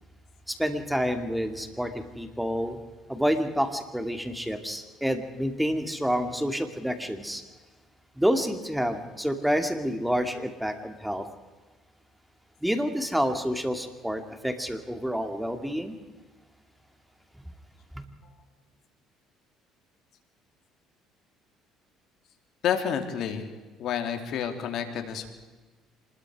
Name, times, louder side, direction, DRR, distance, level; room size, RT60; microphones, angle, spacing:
voice 1, 0.5-2.8 3.1-7.4 8.2-11.3 12.6-16.0 18.0-18.1, equal, 5° right, 7 dB, 2.5 m, -28 dB
voice 2, 22.6-23.5 23.8-25.3, left 8 dB, 60° left, 6 dB, 3.0 m, -29 dB
26.0 x 20.5 x 5.0 m, 1.3 s
supercardioid pair, 90°, 0 cm